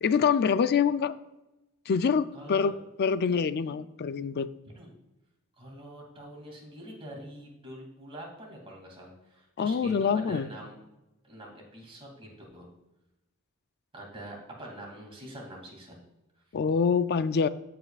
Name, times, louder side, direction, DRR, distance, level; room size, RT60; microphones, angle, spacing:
voice 1, 0.0-1.1 1.9-2.7 3.0-4.5 9.6-10.5 16.5-17.5, left 6 dB, 50° left, 14 dB, 0.4 m, -25 dB
voice 2, 2.3-2.7 4.7-4.9 5.6-10.7 11.2-12.7 13.9-16.0, right 1 dB, 25° right, -2 dB, 2.6 m, -45 dB
16.0 x 5.6 x 2.4 m, 0.97 s
head